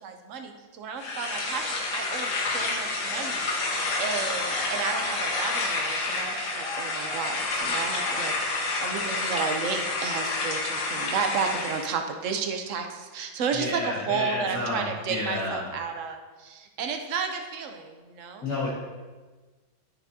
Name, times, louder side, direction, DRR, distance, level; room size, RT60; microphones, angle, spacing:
voice 1, 0.0-3.5 4.0-18.5, right 5 dB, 75° right, 5 dB, 0.7 m, -32 dB
sound 1, 1.0-11.9, left 3 dB, 70° left, 1.9 m, -29 dB
sound 2, 2.9-8.8, equal, ahead, 1.4 m, -41 dB
voice 2, 13.5-15.6 18.4-18.7, left 2 dB, 55° left, -8 dB, 2.1 m, -30 dB
14.0 x 5.9 x 2.8 m, 1.3 s
omnidirectional pair, 2.3 m